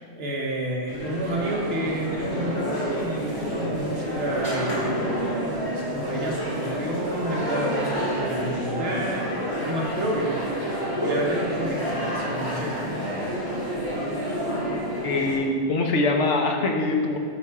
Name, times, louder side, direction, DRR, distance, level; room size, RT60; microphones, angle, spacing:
voice 1, 0.0-5.1 5.5-10.4 10.7-12.9, right 1 dB, 60° right, -3 dB, 1.4 m, -30 dB
sound 1, 0.9-15.4, equal, 30° left, 2.0 m, -28 dB
voice 2, 15.0-17.2, left 2 dB, 80° left, 2 dB, 1.1 m, -23 dB
8.4 x 3.5 x 4.7 m, 2.1 s
omnidirectional pair, 1.2 m